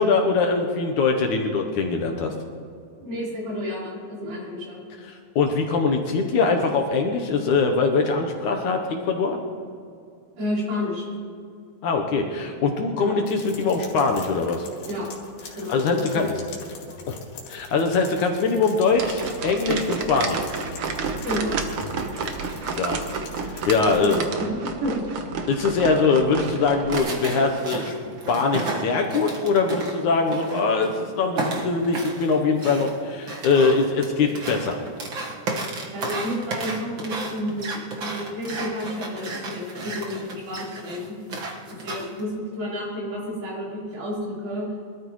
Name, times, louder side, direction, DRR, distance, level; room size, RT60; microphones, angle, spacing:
voice 1, 0.0-2.3 5.0-9.4 11.8-14.7 15.7-16.3 17.1-17.2 17.5-20.5 22.7-23.0 23.4-24.2 25.5-34.8, left 4 dB, 70° left, 3 dB, 2.1 m, -22 dB
voice 2, 3.0-4.8 10.4-11.1 13.0-13.2 14.9-15.1 15.6-16.3 16.9-17.1 21.2-21.5 23.8-25.1 35.9-41.1 41.7-44.7, left 1 dB, 75° right, -6 dB, 5.8 m, -30 dB
sound 1, 13.3-24.3, left 5 dB, 90° left, 3.9 m, -43 dB
sound 2, 18.9-27.0, right 5 dB, 90° right, 1.2 m, -30 dB
sound 3, 26.9-31.0 31.4-42.2, right 3 dB, 50° right, 1.7 m, -33 dB
24.0 x 13.5 x 3.1 m, 2.4 s
omnidirectional pair, 4.1 m